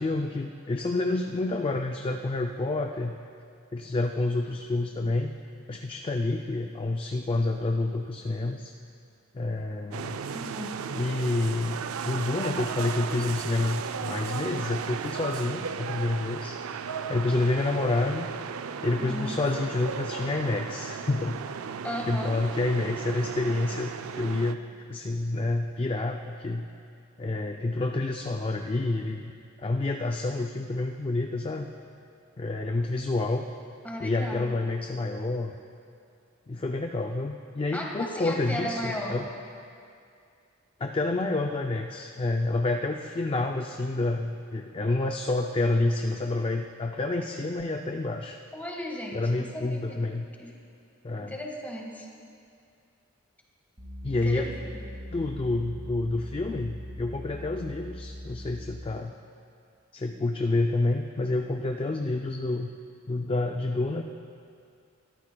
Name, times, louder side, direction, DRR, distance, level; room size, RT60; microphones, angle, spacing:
voice 1, 0.0-3.2 3.7-5.3 5.7-8.7 9.3-10.2 10.9-16.6 17.1-18.3 18.8-21.4 22.1-24.6 24.9-26.7 27.2-29.3 29.6-31.7 32.4-33.4 34.0-35.5 36.5-39.3 40.8-48.4 49.1-50.3 51.0-51.4 54.0-54.5 55.1-59.1 59.9-62.7 63.1-64.0, left 2 dB, 25° left, 4 dB, 0.4 m, -28 dB
sound 1, 9.9-24.5, right 6 dB, 80° right, 0.4 m, -35 dB
voice 2, 10.3-10.8 19.0-19.4 21.8-22.4 33.8-34.5 37.7-39.2 48.5-50.0 50.4-50.5 51.2-52.1 54.1-54.8, left 1 dB, 10° left, -1 dB, 1.6 m, -35 dB
sound 2, 53.8-59.1, left 1 dB, 35° right, 2.0 m, -41 dB
20.0 x 14.0 x 2.3 m, 2.4 s
head